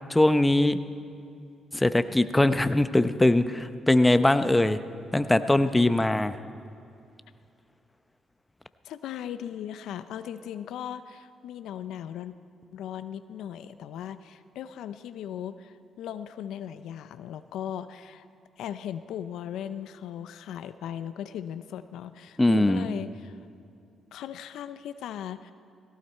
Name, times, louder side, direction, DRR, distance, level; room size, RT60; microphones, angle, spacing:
voice 1, 0.1-0.8 1.7-4.8 5.1-6.4 22.4-22.9, left 1 dB, 15° left, 11 dB, 0.7 m, -21 dB
voice 2, 8.8-12.4 12.7-18.2 18.6-23.4 24.1-25.5, left 10 dB, 80° left, 12 dB, 0.5 m, -38 dB
18.0 x 16.5 x 4.4 m, 2.6 s
supercardioid pair, 55°, 0 cm